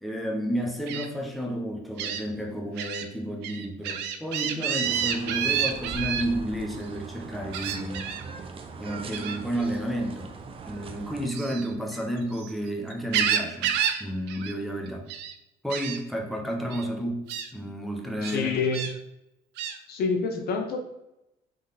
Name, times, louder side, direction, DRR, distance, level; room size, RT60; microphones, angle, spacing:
voice 1, 0.0-8.1 8.8-10.3 10.7-15.1 15.6-18.6, equal, ahead, 0 dB, 0.9 m, -31 dB
Gull seagull, 0.9-1.1 2.0-2.2 2.8-3.0 3.4-6.2 7.5-8.2 9.1-9.4 11.3-12.5 12.9-14.0 14.3-14.5 14.9-15.3 15.7-16.0 16.7-16.9 17.3-17.5 18.2-18.9 19.6-19.8, right 8 dB, 85° right, 0.5 m, -29 dB
sound 1, 4.8-11.3, right 4 dB, 35° right, 0.5 m, -40 dB
voice 2, 18.3-18.8 19.9-20.8, left 5 dB, 65° left, 4 dB, 0.8 m, -27 dB
3.7 x 3.1 x 4.1 m, 0.86 s
cardioid pair, 110°, 17 cm